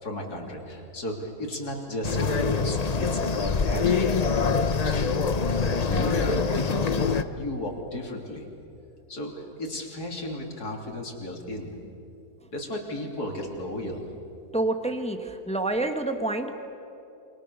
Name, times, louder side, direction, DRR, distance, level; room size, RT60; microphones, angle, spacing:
voice 1, 0.0-4.1 4.8-5.1 5.9-7.1 7.4-8.5 9.1-11.7 12.5-14.0, left 1 dB, 80° left, 1 dB, 3.9 m, -34 dB
sound 1, 2.0-7.2, left 5 dB, 35° left, 0.7 m, -24 dB
voice 2, 14.5-16.5, right 2 dB, 5° left, 6 dB, 1.3 m, -28 dB
28.5 x 26.0 x 6.9 m, 2.8 s
omnidirectional pair, 1.7 m